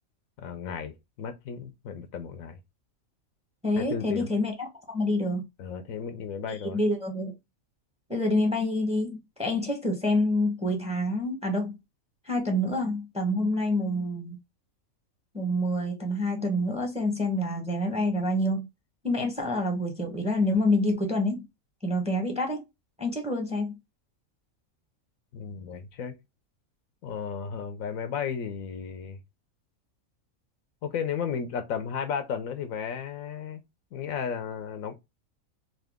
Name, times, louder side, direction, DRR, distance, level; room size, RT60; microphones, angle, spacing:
voice 1, 0.4-2.6 3.8-4.3 5.6-6.8 25.3-26.2 27.0-29.2 30.8-33.6 33.9-34.9, left 7 dB, 75° left, 1.1 m, -34 dB
voice 2, 3.6-5.4 6.6-7.3 8.1-11.8 12.2-14.4 15.3-18.7 19.0-21.5 21.8-22.6 23.0-23.7, left 1 dB, 5° right, 1.0 m, -27 dB
3.8 x 2.8 x 3.5 m
omnidirectional pair, 1.4 m